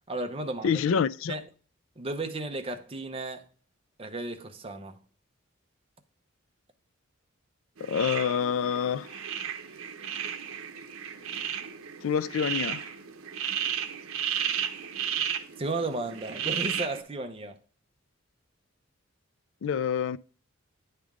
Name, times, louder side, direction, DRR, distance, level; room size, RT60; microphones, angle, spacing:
voice 1, 0.1-0.8 1.3-1.4 2.0-3.5 4.0-5.0 15.6-17.6, right 2 dB, 25° right, 0.8 m, -34 dB
voice 2, 0.6-1.4 7.8-9.2 12.0-12.9 19.6-20.2, left 7 dB, 70° left, 0.4 m, -27 dB
sound 1, 7.8-17.0, right 9 dB, 85° right, 0.7 m, -34 dB
10.5 x 3.4 x 3.6 m
head